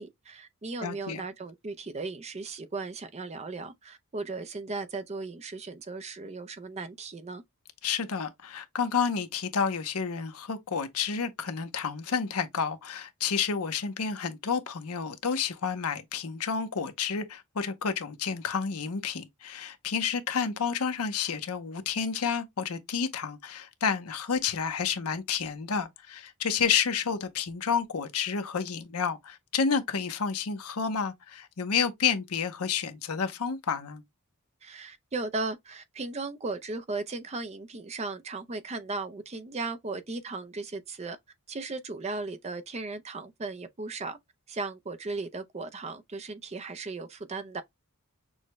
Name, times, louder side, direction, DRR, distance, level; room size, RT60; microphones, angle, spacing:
voice 1, 0.0-7.4 34.6-41.2 41.5-44.2 44.5-47.6, right 3 dB, 30° right, 0.5 m, -36 dB
voice 2, 0.8-1.2 7.8-34.0, left 6 dB, 75° left, 0.7 m, -30 dB
6.2 x 2.2 x 3.0 m
head